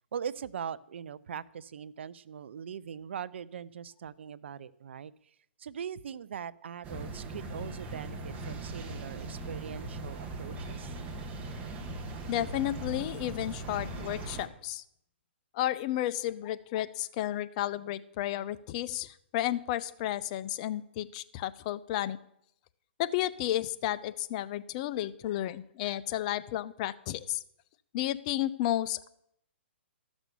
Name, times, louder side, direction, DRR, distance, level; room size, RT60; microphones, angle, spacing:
voice 1, 0.1-5.1 5.6-11.0, right 8 dB, 70° right, 18 dB, 0.5 m, -41 dB
sound 1, 6.8-14.5, right 2 dB, 20° right, 1.3 m, -39 dB
voice 2, 12.3-14.8 15.5-22.2 23.0-27.4 27.9-29.1, left 13 dB, 35° left, 14 dB, 0.5 m, -32 dB
13.5 x 6.2 x 6.8 m, 0.74 s
hypercardioid pair, 145°, 7 cm